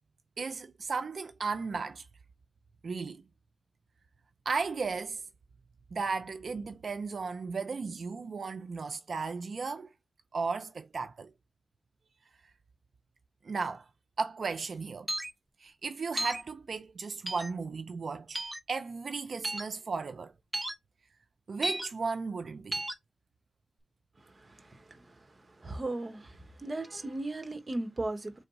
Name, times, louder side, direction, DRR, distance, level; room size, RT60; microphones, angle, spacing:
voice 1, 0.4-2.1 2.8-3.2 4.5-5.2 5.9-9.9 10.3-11.3 13.4-13.9 14.2-15.1 15.6-18.4 18.7-20.3 21.5-22.8, right 4 dB, 85° right, 0.4 m, -35 dB
sound 1, 15.1-15.3 16.2-16.4 17.3-17.5 18.3-18.6 19.4-19.6 20.5-20.7 21.6-21.9 22.7-22.9, right 1 dB, 15° right, 0.9 m, -33 dB
voice 2, 24.2-28.3, right 2 dB, 40° right, 1.0 m, -38 dB
3.8 x 3.4 x 3.9 m
wide cardioid pair, 90°, 0 cm